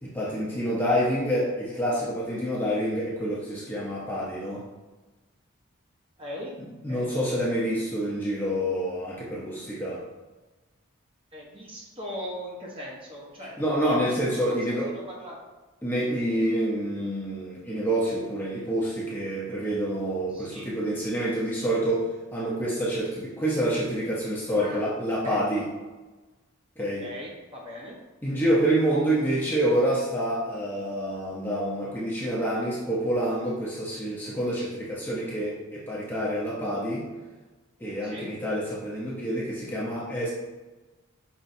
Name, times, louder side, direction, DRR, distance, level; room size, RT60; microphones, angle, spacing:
voice 1, 0.0-4.6 6.8-10.0 13.6-14.9 15.8-25.7 26.8-27.1 28.2-37.1 37.8-40.3, right 1 dB, 10° left, -6 dB, 0.6 m, -27 dB
voice 2, 6.2-6.5 6.9-7.1 7.5-7.6 11.3-13.6 14.5-14.6 15.1-15.4 20.3-20.7 24.5-24.8 25.2-25.4 27.0-27.9 38.1-38.3, equal, 25° right, -3 dB, 0.8 m, -39 dB
5.5 x 3.0 x 2.6 m, 1.2 s
head